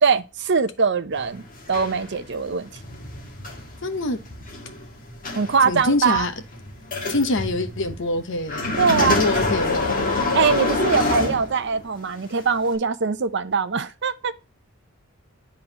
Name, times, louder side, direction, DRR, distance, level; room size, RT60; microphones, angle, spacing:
voice 1, 0.0-2.7 5.4-6.3 8.8-9.2 10.3-14.3, right 5 dB, 55° right, 0.6 m, -22 dB
sound 1, 1.1-12.0 12.6-12.7, left 2 dB, 40° left, 1.7 m, -27 dB
voice 2, 3.8-4.2 5.6-6.3 7.1-10.1, left 2 dB, 60° left, 1.0 m, -25 dB
9.8 x 3.8 x 2.8 m
head